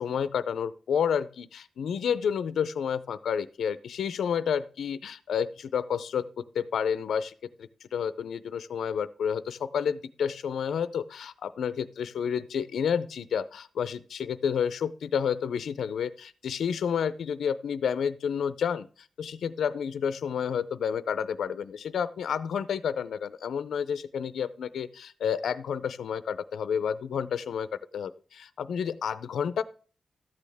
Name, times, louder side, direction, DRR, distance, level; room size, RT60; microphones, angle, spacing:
voice 1, 0.0-7.3 7.6-18.9 19.2-27.7 27.9-29.6, left 7 dB, 85° left, 14 dB, 0.5 m, -30 dB
13.0 x 8.5 x 3.4 m, 0.41 s
wide cardioid pair, 165°, 0 cm